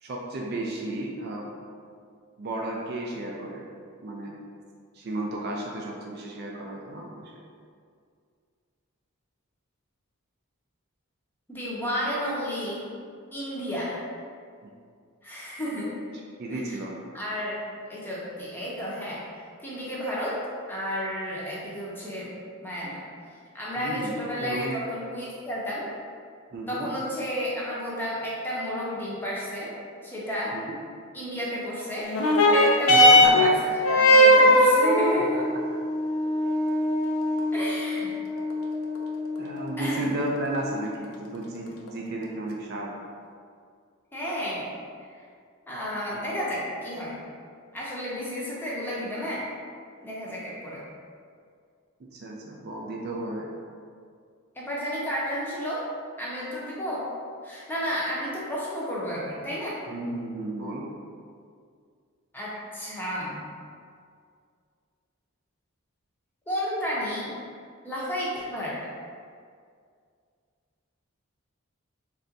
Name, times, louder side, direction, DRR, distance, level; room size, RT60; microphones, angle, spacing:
voice 1, 0.0-1.5 2.4-3.6 4.0-4.4 4.9-7.3 14.6-14.7 16.4-17.0 23.8-24.8 26.5-26.9 30.5-30.7 32.9-33.5 35.2-35.4 39.4-42.9 52.1-53.5 59.9-60.8, right 2 dB, 45° right, -2 dB, 0.4 m, -33 dB
voice 2, 11.5-12.9 13.3-14.1 15.2-15.9 16.5-16.8 17.1-17.6 17.9-19.2 19.6-20.4 20.7-22.3 22.6-23.0 23.5-25.9 26.7-29.7 30.0-30.6 31.1-32.1 32.5-33.6 33.9-35.4 37.5-38.2 39.8-40.1 44.1-44.7 45.7-47.2 47.7-49.5 50.0-50.8 54.6-55.9 56.2-57.0 57.4-59.8 62.3-63.4 66.5-67.3 67.8-68.9, equal, 10° left, -7 dB, 0.7 m, -32 dB
sound 1, 32.1-41.0 41.9-42.0, left 1 dB, 70° left, 0.5 m, -21 dB
3.3 x 2.5 x 3.9 m, 2.2 s
head